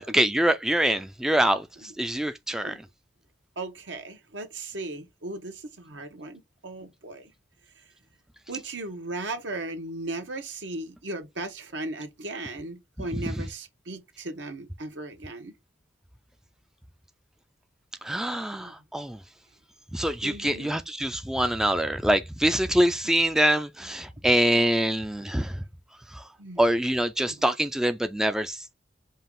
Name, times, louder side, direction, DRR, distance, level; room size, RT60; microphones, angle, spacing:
voice 1, 0.0-2.8 13.0-13.3 18.0-19.2 19.9-25.6 26.1-26.2 26.6-28.6, right 1 dB, 5° right, 0.3 m, -25 dB
voice 2, 3.6-7.3 8.5-15.5 18.6-18.7 20.2-20.8 26.4-26.6, right 2 dB, 80° right, 1.1 m, -37 dB
5.4 x 2.4 x 3.6 m
head